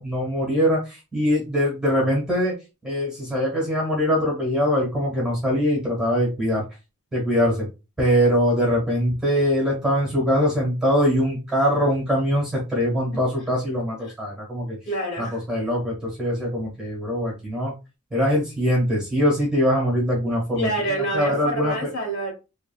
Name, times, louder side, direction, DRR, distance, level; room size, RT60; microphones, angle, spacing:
voice 1, 0.0-2.5 2.8-6.6 7.1-7.7 8.0-14.8 15.2-17.7 18.1-20.7 21.1-21.7, equal, 5° right, 1.3 m, -22 dB
voice 2, 14.9-15.4 20.5-22.3, right 1 dB, 50° left, 1.5 m, -27 dB
3.1 x 2.5 x 2.2 m
head